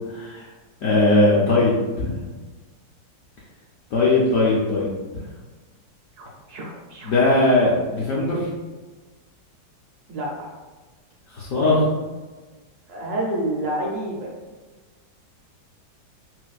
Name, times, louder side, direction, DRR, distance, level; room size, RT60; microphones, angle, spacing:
voice 1, 0.1-0.5 0.8-2.2 3.9-4.9 7.0-8.5 11.3-11.8, left 2 dB, 65° left, -6 dB, 0.8 m, -19 dB
voice 2, 6.2-7.3 10.1-10.5 11.5-11.8 12.9-14.3, right 1 dB, 70° right, -2 dB, 1.1 m, -29 dB
4.1 x 2.2 x 2.3 m, 1.3 s
omnidirectional pair, 1.9 m